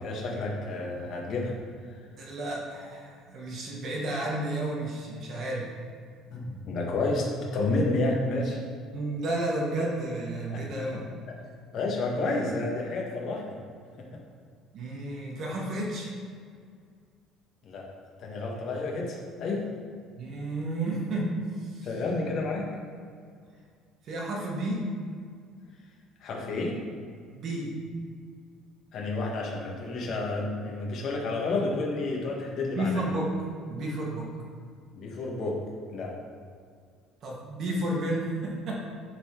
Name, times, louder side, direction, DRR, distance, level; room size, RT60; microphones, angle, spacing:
voice 1, 0.0-1.5 6.3-8.6 10.5-10.6 11.7-13.5 17.6-17.9 18.2-19.6 21.8-22.7 26.2-26.8 28.9-33.0 34.9-35.6 35.9-36.1, left 2 dB, 40° left, -2 dB, 1.4 m, -30 dB
voice 2, 2.2-5.7 8.9-11.0 12.4-12.5 14.7-16.1 20.2-21.3 21.6-21.9 24.0-24.9 27.3-27.7 32.7-33.3 33.7-34.3 37.2-38.8, right 1 dB, 40° right, -2 dB, 1.4 m, -32 dB
9.9 x 4.0 x 4.4 m, 2.1 s
cardioid pair, 175°, 0 cm